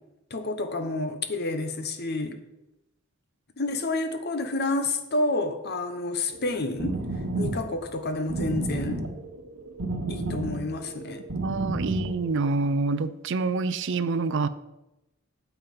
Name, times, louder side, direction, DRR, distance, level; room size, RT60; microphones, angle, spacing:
voice 1, 0.3-2.4 3.6-7.0 7.4-9.0 10.1-11.2, left 2 dB, 50° left, 8 dB, 1.1 m, -29 dB
sound 1, 6.3-12.4, right 2 dB, 85° right, 1.1 m, -32 dB
voice 2, 11.4-14.5, right 3 dB, 60° right, 14 dB, 0.5 m, -27 dB
9.1 x 7.1 x 5.3 m, 0.94 s
head